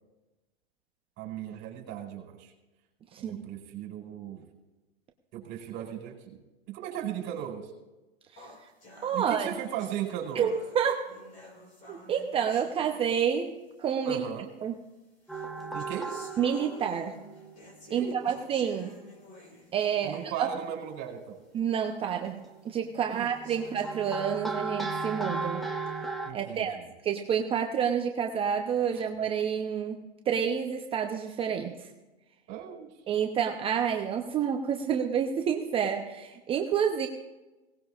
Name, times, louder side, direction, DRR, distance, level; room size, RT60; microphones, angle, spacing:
voice 1, 1.2-2.5 3.2-4.4 5.3-6.4 6.7-7.7 9.1-10.5 14.0-14.5 15.7-16.1 17.9-18.3 20.0-21.4 23.1-23.3 26.2-26.7 28.9-29.0 32.5-32.9, right 10 dB, 35° right, 0 dB, 4.5 m, -37 dB
voice 2, 3.1-3.5 8.3-8.5 9.0-9.5 10.4-11.0 11.9-14.2 14.6-14.8 16.4-17.2 17.9-19.0 19.7-20.5 21.5-25.6 26.3-26.8 27.0-31.9 33.1-37.1, right 8 dB, 20° right, 3 dB, 0.8 m, -29 dB
sound 1, 8.4-13.5 14.4-14.5 15.2-20.5 20.9-21.0 21.6-21.7 22.3-22.4 23.2-24.4, left 1 dB, 25° left, 4.4 m, -51 dB
sound 2, 15.3-17.6 18.0-18.5 20.7-20.8 21.9-22.5 23.1-26.3, right 3 dB, ahead, 1.1 m, -36 dB
21.5 x 18.5 x 2.5 m, 1.1 s
hypercardioid pair, 135°, 31 cm